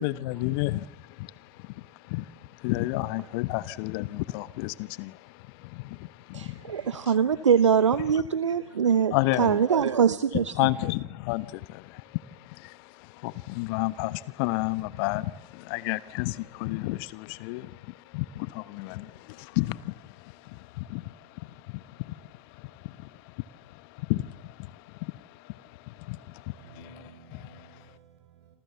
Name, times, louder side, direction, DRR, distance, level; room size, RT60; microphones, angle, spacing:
voice 1, 0.0-6.8 9.1-9.6 10.6-27.0 27.3-27.7, left 19 dB, 50° left, 1.2 m, -32 dB
voice 2, 6.3-10.7, right 7 dB, 80° right, 1.0 m, -23 dB
voice 3, 26.6-28.6, right 6 dB, 65° right, 6.3 m, -53 dB
27.0 x 27.0 x 7.1 m
figure-of-eight pair, 95°, 15 cm